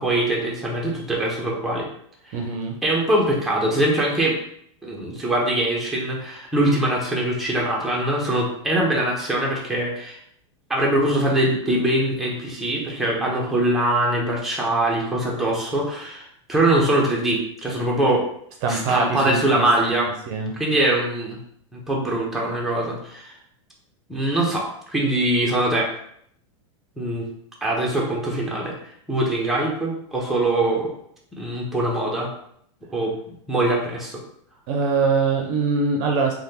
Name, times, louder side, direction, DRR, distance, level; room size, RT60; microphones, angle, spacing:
voice 1, 0.0-1.9 2.3-2.4 2.8-4.4 4.8-10.2 10.7-18.2 18.7-20.1 20.6-21.4 21.7-23.3 24.1-25.9 27.0-27.3 27.6-28.7 29.1-30.9 31.4-32.3 32.9-34.2, right 1 dB, ahead, -4 dB, 0.8 m, -22 dB
voice 2, 2.3-2.8 18.6-20.0 20.3-20.5 34.7-36.3, right 4 dB, 50° right, 2 dB, 0.5 m, -23 dB
3.2 x 2.3 x 2.8 m, 0.69 s
hypercardioid pair, 120°, 16 cm